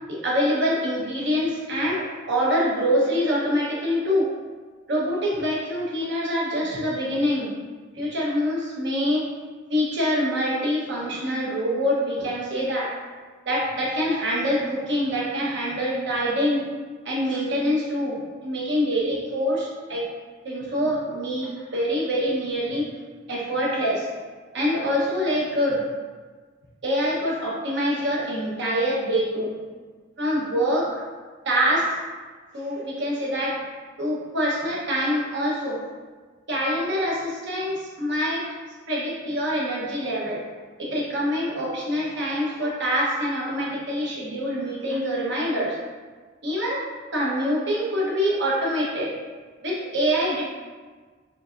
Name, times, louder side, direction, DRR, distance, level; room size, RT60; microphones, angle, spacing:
voice 1, 0.1-4.3 4.9-7.5 7.9-9.3 9.7-13.0 13.4-16.7 17.0-20.1 20.4-22.9 23.3-24.1 24.5-25.9 26.8-29.6 30.2-31.0 31.4-32.0 32.5-33.6 34.0-35.8 36.5-38.5 38.9-40.4 40.8-45.8 46.4-49.1 49.6-50.4, equal, 65° right, -4 dB, 1.0 m, -25 dB
4.7 x 3.4 x 2.5 m, 1.4 s
head